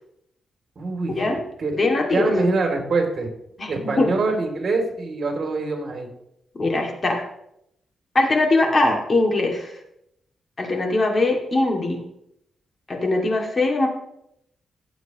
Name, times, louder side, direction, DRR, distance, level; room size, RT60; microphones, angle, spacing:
voice 1, 0.8-1.2 1.6-1.8 2.1-3.3 3.7-6.1, right 3 dB, 50° right, 2 dB, 3.1 m, -24 dB
voice 2, 1.8-2.5 3.6-4.1 6.5-7.2 8.1-9.7 10.6-12.0 12.9-13.9, left 2 dB, 35° left, 1 dB, 2.4 m, -21 dB
17.0 x 8.1 x 3.1 m, 0.78 s
cardioid pair, 95°, 0 cm